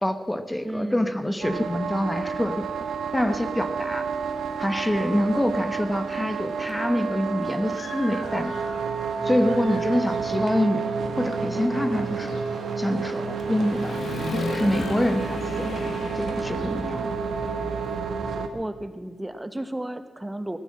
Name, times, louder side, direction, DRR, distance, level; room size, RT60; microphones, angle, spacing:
voice 1, 0.0-2.7 3.1-4.1 4.6-8.6 9.2-10.9 11.2-12.4 12.8-14.0 14.3-15.9 16.2-17.0, left 1 dB, 10° left, 9 dB, 1.0 m, -26 dB
voice 2, 0.6-1.2 16.4-17.5 18.5-20.6, right 1 dB, 10° right, 10 dB, 1.0 m, -34 dB
sound 1, 1.4-18.5, right 5 dB, 90° right, 1.2 m, -30 dB
sound 2, 4.1-6.4 6.7-6.8 7.2-18.3, right 4 dB, 70° right, 1.9 m, -44 dB
Human voice / Motorcycle, 6.7-6.8 7.3-9.1 9.4-18.0, left 4 dB, 70° left, 1.2 m, -38 dB
18.0 x 9.9 x 7.6 m, 1.4 s
cardioid pair, 80°, 0 cm